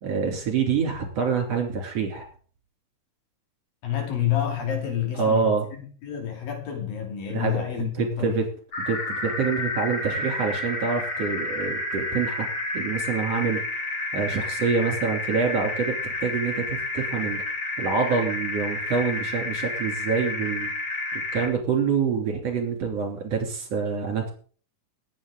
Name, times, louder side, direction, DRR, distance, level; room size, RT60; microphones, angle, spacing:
voice 1, 0.0-2.3 5.1-5.7 7.3-8.5 8.8-12.5 12.7-13.6 14.1-17.4 17.8-20.7 21.3-24.3, right 5 dB, 50° right, 4.0 m, -26 dB
voice 2, 3.8-8.5, left 10 dB, 80° left, 4.6 m, -29 dB
sound 1, 8.7-21.5, left 2 dB, 40° left, 3.8 m, -30 dB
20.5 x 8.8 x 3.8 m
omnidirectional pair, 4.0 m